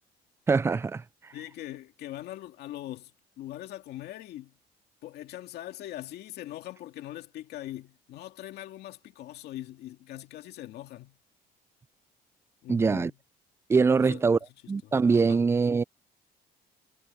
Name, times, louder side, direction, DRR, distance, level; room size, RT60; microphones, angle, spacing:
voice 1, 0.5-1.3 12.7-13.1 13.7-14.4 14.7-15.8, right 4 dB, 15° right, 0.3 m, -23 dB
voice 2, 1.3-3.1 3.4-4.5 5.0-11.2 12.6-13.1 13.9-14.2 15.3-15.4, left 14 dB, 75° left, 2.1 m, -41 dB
cardioid pair, 110°, 17 cm